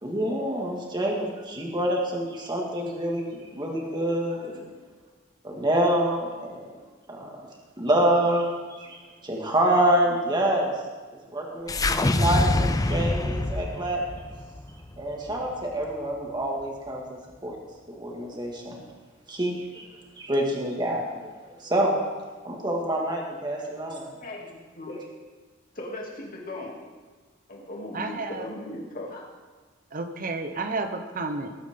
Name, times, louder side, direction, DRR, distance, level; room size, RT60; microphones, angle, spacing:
voice 1, 0.0-4.6 5.4-6.6 7.1-7.3 7.8-10.7 11.3-14.0 15.0-17.6 17.9-18.8 19.3-19.9 20.2-21.0 21.6-21.9 22.4-24.1, right 1 dB, 20° right, -1 dB, 2.0 m, -27 dB
sound 1, 11.7-16.0, left 2 dB, 20° left, 0.5 m, -26 dB
voice 2, 24.7-25.1 25.7-26.8 27.5-29.3, left 1 dB, 45° left, -2 dB, 2.8 m, -38 dB
voice 3, 27.9-28.5 29.9-31.5, right 3 dB, 45° right, 7 dB, 1.0 m, -31 dB
19.5 x 9.0 x 3.8 m, 1.4 s
head